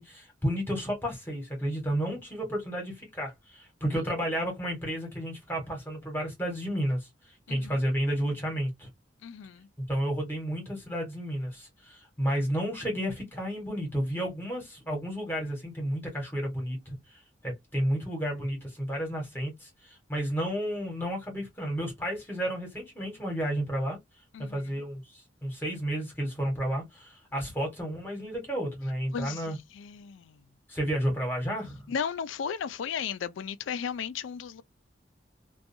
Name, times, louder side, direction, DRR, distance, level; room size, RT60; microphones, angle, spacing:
voice 1, 0.0-7.1 7.5-8.9 9.8-17.0 17.4-24.0 24.4-29.6 30.7-31.9, equal, 10° left, 1.2 m, -32 dB
voice 2, 9.2-9.7 24.3-24.6 29.1-30.4 31.9-34.6, left 7 dB, 85° left, 0.4 m, -35 dB
2.5 x 2.3 x 2.6 m
head